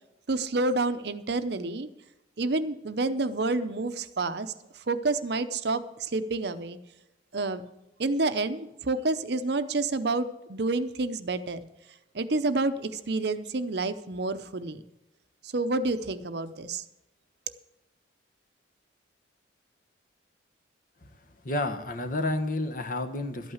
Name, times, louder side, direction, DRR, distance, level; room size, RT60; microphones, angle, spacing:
voice 1, 0.3-1.9 2.4-4.5 4.9-6.8 7.3-7.6 8.0-11.7 12.1-14.8 15.4-16.8, right 3 dB, 55° right, 11 dB, 0.7 m, -29 dB
voice 2, 21.4-23.5, left 2 dB, 45° left, 8 dB, 1.1 m, -30 dB
12.5 x 8.8 x 6.4 m, 0.90 s
head